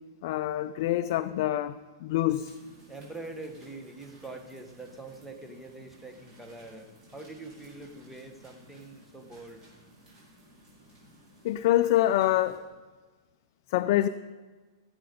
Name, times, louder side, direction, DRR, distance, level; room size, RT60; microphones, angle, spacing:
voice 1, 0.2-2.6 11.4-12.6 13.7-14.1, left 14 dB, 45° left, 11 dB, 0.4 m, -26 dB
sound 1, 2.3-12.6, right 1 dB, 25° right, 4.7 m, -57 dB
voice 2, 2.9-9.6, right 2 dB, 5° right, 4 dB, 1.0 m, -44 dB
16.5 x 7.8 x 5.1 m, 1.4 s
supercardioid pair, 160°, 2 cm